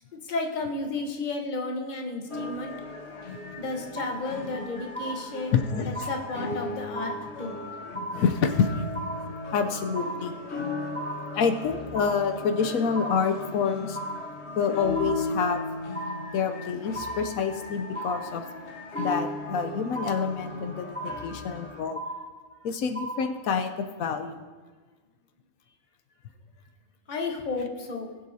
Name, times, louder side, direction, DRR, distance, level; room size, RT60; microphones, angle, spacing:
voice 1, 0.2-2.7 3.6-5.6 5.8-7.6 27.1-28.1, left 3 dB, 35° left, 2 dB, 1.1 m, -32 dB
sound 1, 2.3-21.8, left 2 dB, 55° left, 1.3 m, -37 dB
sound 2, 4.0-4.6 5.0-5.6 6.0-6.6 7.0-7.6 8.0-8.6 9.0-9.6 10.0-10.6 11.0-11.6 12.0-12.6 13.0-13.6 14.0-14.6 15.0-15.6 15.9-16.6 16.9-17.6 18.0-18.6 19.0-19.6 20.0-20.6 21.0-21.6 22.0-22.6 23.0-23.6, right 1 dB, 15° right, 0.4 m, -37 dB
voice 2, 5.5-6.1 8.1-8.8 9.5-10.4 11.3-14.0 14.6-15.6 16.3-18.4 19.0-22.0 22.6-24.4, left 6 dB, 80° left, 6 dB, 1.1 m, -27 dB
20.5 x 7.7 x 2.7 m, 1.4 s
omnidirectional pair, 1.5 m